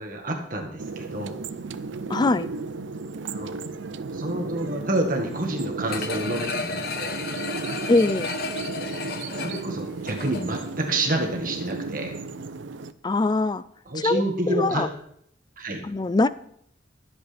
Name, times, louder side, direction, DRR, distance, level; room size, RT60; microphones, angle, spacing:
voice 1, 0.0-1.4 3.3-3.5 4.1-7.2 9.4-12.1 13.9-14.9 15.6-15.8, right 1 dB, 45° right, 2 dB, 1.7 m, -28 dB
sound 1, 0.8-12.9, right 3 dB, 85° right, 0.6 m, -34 dB
voice 2, 2.1-2.5 7.9-8.3 13.0-13.6 13.9-14.2 14.5-14.9 15.8-16.3, left 2 dB, 20° left, 15 dB, 0.4 m, -22 dB
sound 2, 5.9-10.7 11.1-11.2, left 4 dB, 55° left, 1.1 m, -33 dB
23.5 x 8.0 x 3.5 m, 0.70 s
head